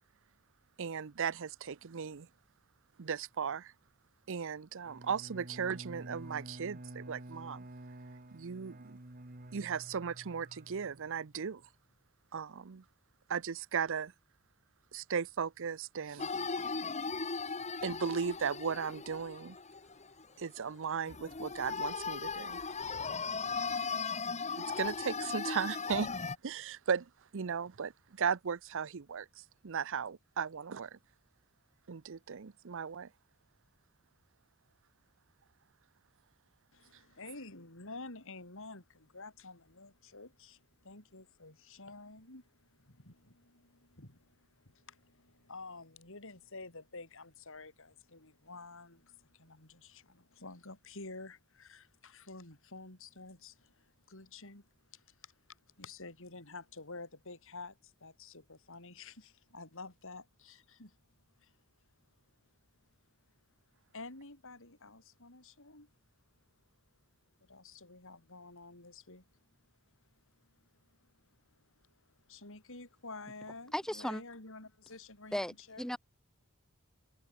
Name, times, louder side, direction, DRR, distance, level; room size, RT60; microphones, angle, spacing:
voice 1, 0.8-2.3 3.0-3.7 4.3-7.6 8.3-9.0 9.5-11.6 12.3-12.8 13.3-14.1 14.9-16.3 17.8-19.6 20.4-22.6 24.6-26.1 26.4-31.0 31.9-33.1, right 6 dB, 65° right, 0.6 m, -36 dB
Bowed string instrument, 4.8-11.5, right 1 dB, 40° right, 1.8 m, -50 dB
sound 1, 16.2-20.2 20.6-20.7 21.1-26.4, left 5 dB, 30° left, 1.9 m, -37 dB
voice 2, 36.7-61.0 61.4-61.6 63.9-65.9 67.4-69.4 70.4-71.2 71.5-75.9, left 3 dB, 65° left, 6.1 m, -50 dB
voice 3, 73.7-74.2 75.3-75.5 75.8-76.0, equal, 5° left, 2.0 m, -35 dB
head